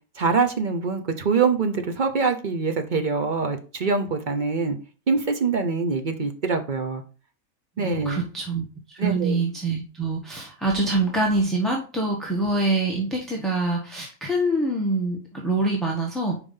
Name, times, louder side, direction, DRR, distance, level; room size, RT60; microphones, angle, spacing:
voice 1, 0.2-4.8 5.1-7.0 7.8-8.2 9.0-9.4, right 4 dB, 40° right, 6 dB, 0.7 m, -24 dB
voice 2, 7.8-8.6 8.9-16.4, right 2 dB, ahead, -2 dB, 1.0 m, -25 dB
5.0 x 5.0 x 5.4 m, 0.36 s
omnidirectional pair, 1.7 m